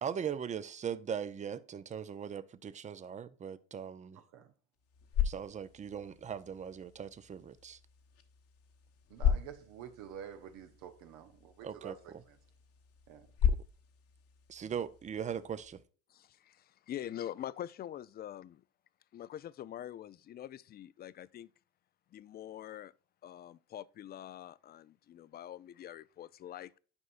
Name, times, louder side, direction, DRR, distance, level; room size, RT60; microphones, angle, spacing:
voice 1, 0.0-4.2 5.2-7.8 11.6-12.0 13.5-13.6 14.5-15.8, right 8 dB, 25° right, 0.5 m, -39 dB
sound 1, 4.7-15.8, left 8 dB, 55° left, 1.1 m, -37 dB
voice 2, 9.1-12.4 13.1-13.3, right 9 dB, 70° right, 0.9 m, -49 dB
voice 3, 16.1-18.6 19.1-21.5 22.1-22.9 23.2-26.8, left 11 dB, 35° left, 0.4 m, -45 dB
9.7 x 5.5 x 2.5 m
supercardioid pair, 90°, 30 cm